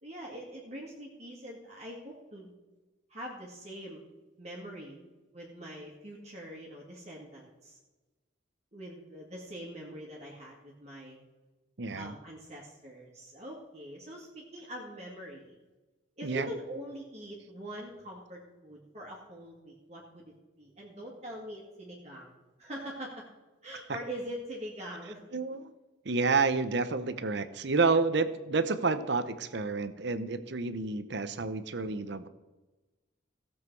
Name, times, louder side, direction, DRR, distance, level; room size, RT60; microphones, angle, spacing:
voice 1, 0.0-2.5 3.1-4.0 4.4-5.0 5.3-7.8 8.7-11.2 11.9-15.6 16.2-20.3 20.6-22.3 22.6-23.2 23.6-25.2, right 1 dB, 35° right, -3 dB, 2.0 m, -43 dB
voice 2, 11.8-12.1 16.2-16.5 25.3-25.7 26.0-32.3, right 4 dB, 60° right, 12 dB, 0.8 m, -29 dB
16.5 x 7.4 x 4.7 m, 1.2 s
head